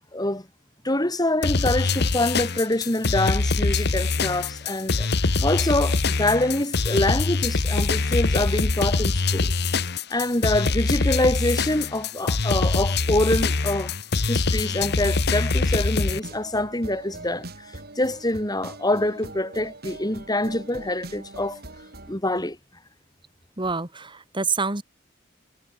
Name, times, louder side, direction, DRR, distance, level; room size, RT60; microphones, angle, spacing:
voice 1, 0.1-0.4 0.8-5.1 5.4-9.5 10.1-13.9 14.3-17.5 18.0-21.6 22.1-22.6, left 1 dB, 20° left, 5.1 m, -25 dB
sound 1, 1.4-16.2, left 3 dB, 60° left, 1.1 m, -24 dB
sound 2, 16.1-22.1, right 2 dB, 55° right, 5.6 m, -41 dB
voice 2, 23.6-24.8, right 4 dB, 25° right, 2.7 m, -27 dB
head